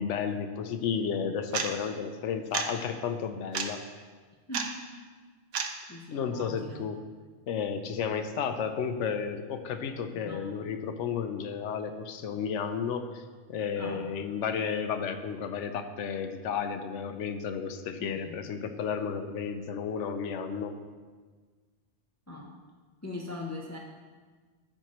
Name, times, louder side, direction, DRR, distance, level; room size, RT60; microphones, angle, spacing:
voice 1, 0.0-3.8 6.1-7.0 7.5-13.2 13.5-20.8, left 6 dB, 75° left, 8 dB, 0.9 m, -32 dB
sound 1, 1.5-1.7 2.5-2.7 3.5-3.7 4.5-4.7 5.5-5.7, right 6 dB, 80° right, 1.0 m, -30 dB
voice 2, 5.9-6.9 10.1-10.4 13.8-14.1 18.0-18.3 22.3-22.5 23.0-23.8, left 2 dB, 15° left, -2 dB, 0.6 m, -41 dB
13.5 x 4.5 x 3.0 m, 1.5 s
omnidirectional pair, 1.2 m